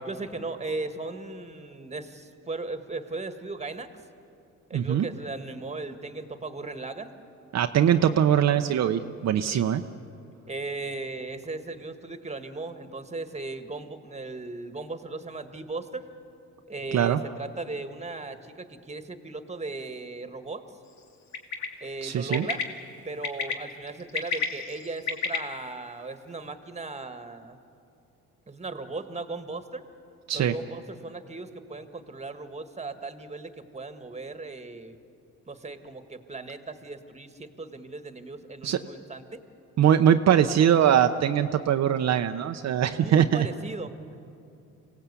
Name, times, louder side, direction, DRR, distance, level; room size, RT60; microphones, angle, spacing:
voice 1, 0.1-3.9 4.7-7.1 9.5-9.6 10.5-16.1 16.7-20.6 21.8-22.6 23.0-27.6 28.5-29.9 30.3-35.0 35.4-39.4 42.9-43.9, right 3 dB, 20° right, 9 dB, 1.6 m, -37 dB
voice 2, 4.7-5.1 7.5-9.8 16.9-17.2 22.0-22.5 30.3-30.5 38.6-38.8 39.8-43.5, right 9 dB, 60° right, 6 dB, 0.8 m, -22 dB
Bird, 21.3-21.7 22.3-22.6 23.2-23.5 24.0-25.4, left 5 dB, 70° left, 2.3 m, -29 dB
26.0 x 17.5 x 8.4 m, 2.7 s
cardioid pair, 90°, 30 cm